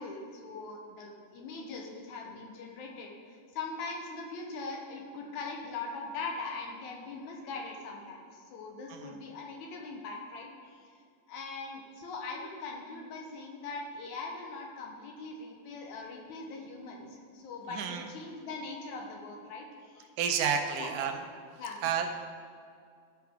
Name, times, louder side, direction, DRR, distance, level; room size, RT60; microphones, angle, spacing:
voice 1, 0.0-10.9 11.3-20.1 20.8-20.9 21.6-21.8, left 3 dB, 75° left, 0 dB, 2.1 m, -41 dB
voice 2, 17.7-18.1 20.2-21.1 21.8-22.1, right 7 dB, 80° right, 5 dB, 2.2 m, -30 dB
12.5 x 5.7 x 3.5 m, 2.2 s
omnidirectional pair, 3.6 m